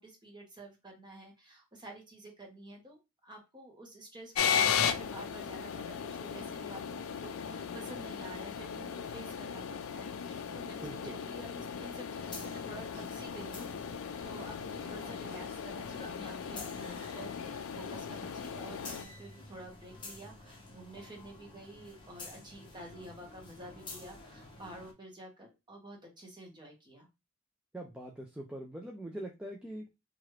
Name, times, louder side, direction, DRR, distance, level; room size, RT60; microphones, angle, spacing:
voice 1, 0.0-13.7 14.2-27.1, right 2 dB, 20° right, 1 dB, 1.0 m, -50 dB
sound 1, 4.3-19.0, left 7 dB, 70° left, 0.4 m, -36 dB
voice 2, 10.8-11.2 27.7-29.8, right 1 dB, 5° right, 0 dB, 0.4 m, -42 dB
sound 2, 12.2-24.9, left 3 dB, 20° left, 0.7 m, -50 dB
2.9 x 2.4 x 3.1 m, 0.24 s
head